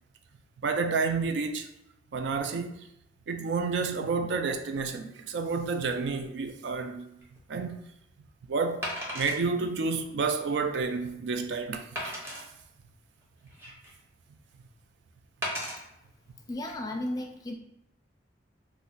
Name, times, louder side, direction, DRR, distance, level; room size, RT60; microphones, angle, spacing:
voice 1, 0.6-1.7 2.1-2.8 3.3-7.2 7.5-7.8 8.5-11.9, right 4 dB, 75° right, 0.3 m, -30 dB
Wood, 7.2-7.4 8.8-9.4 10.0-10.1 10.7-10.8 12.0-12.4 13.2-14.0 15.4-15.8 16.5-16.7, equal, 15° right, 0.7 m, -35 dB
voice 2, 16.5-17.5, left 1 dB, 20° left, 0.4 m, -34 dB
2.5 x 2.1 x 3.8 m
head